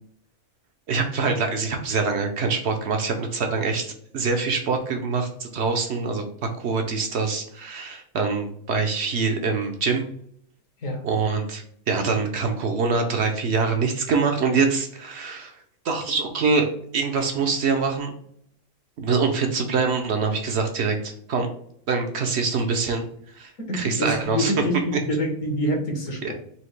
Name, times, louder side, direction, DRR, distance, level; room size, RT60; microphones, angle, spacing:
voice 1, 0.9-6.2 6.6-10.1 11.0-15.5 15.8-18.1 19.0-21.5 21.9-23.1 23.4-24.5 26.2-26.3, right 4 dB, 60° right, 5 dB, 0.8 m, -24 dB
voice 2, 23.6-26.3, equal, 65° left, 1 dB, 1.4 m, -26 dB
4.3 x 2.7 x 3.1 m, 0.65 s
omnidirectional pair, 1.5 m